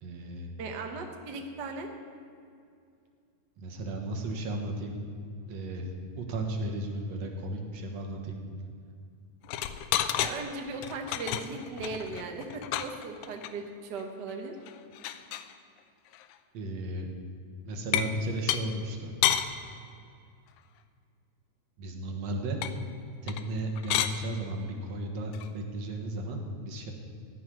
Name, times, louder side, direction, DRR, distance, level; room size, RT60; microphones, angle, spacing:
voice 1, 0.0-0.5 3.6-5.0 5.5-5.9 6.1-8.4 16.5-17.1 17.6-19.1 21.8-22.6 23.2-26.9, right 1 dB, 65° right, 3 dB, 2.5 m, -34 dB
voice 2, 0.6-1.9 10.2-14.5, right 3 dB, 50° right, 3 dB, 1.3 m, -38 dB
sound 1, 9.4-10.4 10.8-13.5 14.0-14.1 14.3-14.4 14.7-15.5 16.1-16.3 17.9-18.2 18.5-18.6 19.2-19.5 22.6-22.7 23.3-23.5 23.8-24.2 25.3-25.5, left 11 dB, 85° left, 2.1 m, -30 dB
15.5 x 6.3 x 9.9 m, 2.3 s
omnidirectional pair, 3.3 m